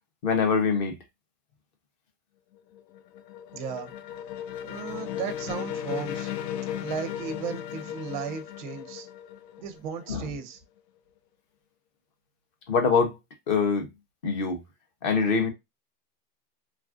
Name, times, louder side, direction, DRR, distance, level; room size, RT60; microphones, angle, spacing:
voice 1, 0.2-1.0 10.1-10.3 12.7-13.1 13.5-13.9 14.2-14.6 15.0-15.5, left 5 dB, 30° left, 0.5 m, -24 dB
sound 1, 2.6-10.3, left 10 dB, 85° left, 0.6 m, -36 dB
voice 2, 3.5-3.9 4.6-6.3 6.8-9.1 9.6-10.6, right 7 dB, 35° right, 0.4 m, -35 dB
3.2 x 2.4 x 2.4 m
supercardioid pair, 160°, 48 cm